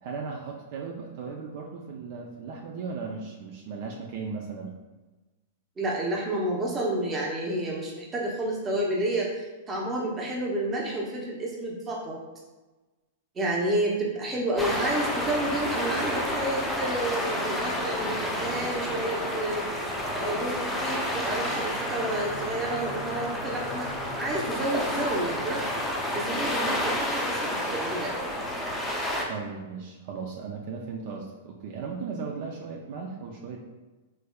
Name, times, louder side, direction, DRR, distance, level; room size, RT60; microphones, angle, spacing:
voice 1, 0.0-4.7 29.3-33.6, right 5 dB, 55° right, 0 dB, 0.4 m, -36 dB
voice 2, 5.8-9.3 9.7-12.2 13.4-19.7 20.1-23.9 24.2-25.8 26.1-28.2, right 1 dB, 20° right, -2 dB, 0.8 m, -30 dB
sound 1, 14.6-29.2, equal, 10° left, 0.5 m, -30 dB
3.4 x 3.2 x 2.2 m, 1.2 s
hypercardioid pair, 130°, 0 cm